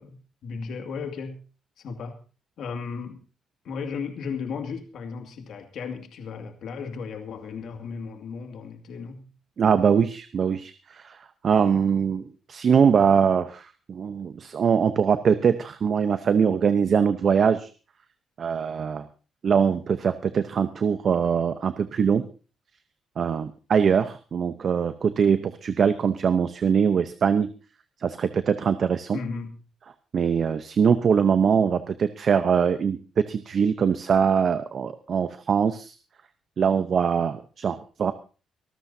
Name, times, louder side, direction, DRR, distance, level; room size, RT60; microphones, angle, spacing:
voice 1, 0.0-1.4 1.8-2.2 2.6-3.2 3.6-9.3 29.1-29.6, left 5 dB, 70° left, 5 dB, 2.2 m, -35 dB
voice 2, 9.6-11.2 11.4-17.7 18.4-19.1 19.4-22.3 23.2-27.5 28.0-29.2 30.1-33.0 33.3-35.9 36.6-38.1, right 7 dB, 50° right, 11 dB, 0.8 m, -22 dB
24.5 x 13.5 x 2.8 m, 0.34 s
cardioid pair, 90°, 0 cm